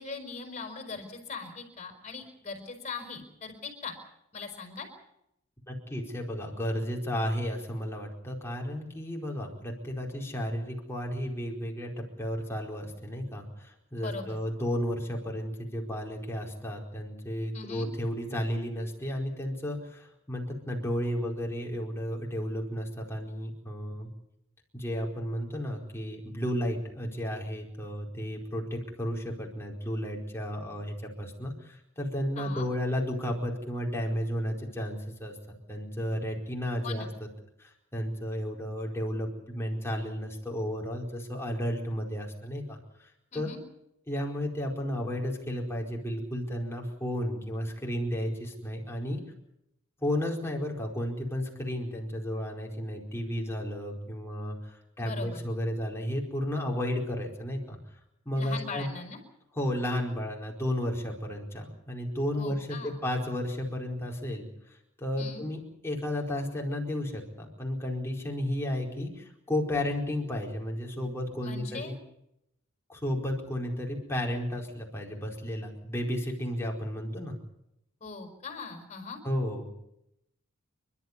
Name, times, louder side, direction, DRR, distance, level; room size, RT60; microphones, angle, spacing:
voice 1, 0.0-3.9 4.3-4.9 14.0-14.4 17.5-17.9 32.4-32.7 36.8-37.1 43.3-43.6 55.0-55.4 58.3-59.2 62.3-63.0 65.2-65.5 71.4-72.0 78.0-79.2, left 4 dB, 35° left, 5 dB, 5.2 m, -40 dB
voice 2, 5.7-24.1 24.7-35.3 35.7-37.1 37.6-43.5 44.1-49.2 50.0-57.8 58.2-58.9 59.6-71.9 72.9-77.4 79.2-79.7, equal, 10° left, -1 dB, 4.7 m, -33 dB
29.5 x 12.5 x 9.7 m, 0.83 s
head